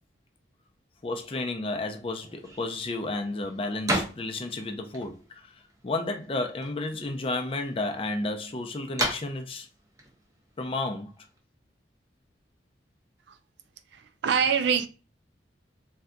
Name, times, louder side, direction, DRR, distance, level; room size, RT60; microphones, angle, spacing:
voice 1, 1.0-9.7 10.6-11.1, left 2 dB, 30° left, 0.4 m, -32 dB
sound 1, 2.2-11.4, right 1 dB, 20° right, 0.6 m, -37 dB
voice 2, 13.9-14.9, right 7 dB, 65° right, 0.3 m, -25 dB
3.6 x 2.6 x 2.2 m
head